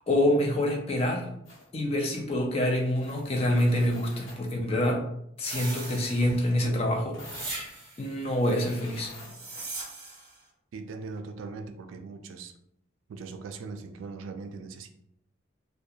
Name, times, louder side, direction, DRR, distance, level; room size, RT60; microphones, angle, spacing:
voice 1, 0.1-1.3 1.7-5.0 5.4-7.7 8.0-9.1, left 1 dB, 30° left, 2 dB, 0.3 m, -26 dB
sound 1, 1.4-1.7 2.0-2.2 2.6-4.6 7.1-9.8, left 2 dB, 75° left, 0.9 m, -49 dB
Nice Swoosh, 5.4-6.6 7.2-8.1 9.1-10.3, right 2 dB, 50° right, 0.8 m, -39 dB
voice 2, 10.7-12.5 13.1-14.9, right 4 dB, 85° right, 7 dB, 0.3 m, -40 dB
2.7 x 2.1 x 2.3 m, 0.75 s
head